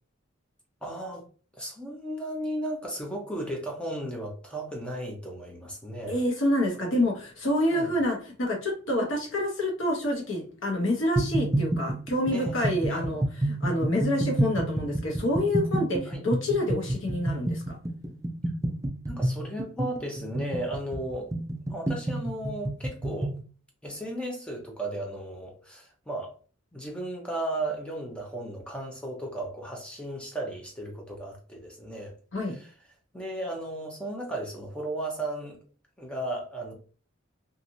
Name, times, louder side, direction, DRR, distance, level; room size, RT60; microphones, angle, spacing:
voice 1, 0.8-1.2 1.5-6.2 7.7-7.9 12.3-13.1 16.1-16.2 19.1-21.3 21.7-23.3 23.8-26.3 26.7-32.1 32.4-32.7 33.1-35.6 36.0-36.7, right 1 dB, 5° left, 0.7 m, -35 dB
voice 2, 6.1-17.8 32.3-32.6, left 1 dB, 65° left, 1.1 m, -27 dB
sound 1, 11.2-23.4, right 1 dB, 15° right, 0.3 m, -29 dB
2.8 x 2.6 x 2.5 m
head